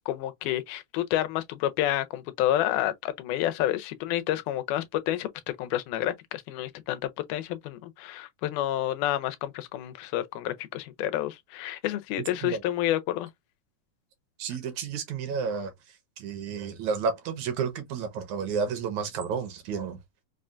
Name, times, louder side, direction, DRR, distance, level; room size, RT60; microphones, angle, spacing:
voice 1, 0.1-5.3 5.6-7.0 7.3-13.3, left 13 dB, 85° left, 2.1 m, -29 dB
voice 2, 14.4-15.7 16.2-20.0, right 6 dB, 70° right, 2.0 m, -31 dB
5.3 x 2.2 x 2.4 m
omnidirectional pair, 3.6 m